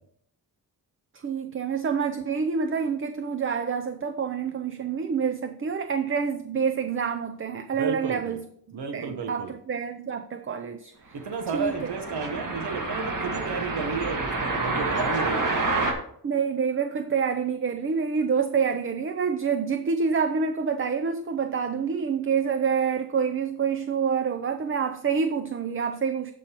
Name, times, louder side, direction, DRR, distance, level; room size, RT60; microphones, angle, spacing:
voice 1, 1.2-11.2 11.5-11.7 16.2-26.3, right 6 dB, 35° right, 0.5 m, -27 dB
voice 2, 7.7-8.4 8.7-9.5 11.1-15.5, right 5 dB, 85° right, 1.1 m, -32 dB
sound 1, 11.2-15.9, right 3 dB, 55° right, 1.8 m, -28 dB
14.5 x 5.4 x 2.9 m
wide cardioid pair, 125°, 39 cm